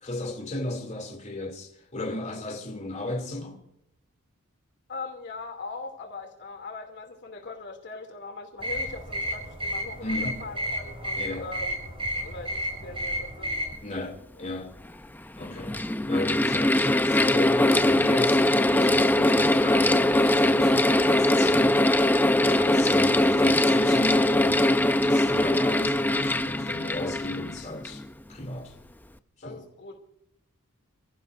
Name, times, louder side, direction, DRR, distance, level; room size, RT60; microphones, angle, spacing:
voice 1, 0.0-3.6 10.0-10.4 11.1-11.5 13.8-14.9 15.3-21.9 22.4-28.0 28.3-28.7 29.4-29.6, left 2 dB, 35° left, 2.8 m, -35 dB
voice 2, 4.9-11.8 12.2-13.5 14.4-14.5 29.4-30.0, left 3 dB, 55° left, 2.7 m, -40 dB
sound 1, 8.6-13.7, equal, 25° right, 7.4 m, -32 dB
Mechanical fan, 14.4-14.5 15.4-28.0, left 1 dB, 10° left, 0.6 m, -22 dB
29.5 x 16.0 x 2.6 m
head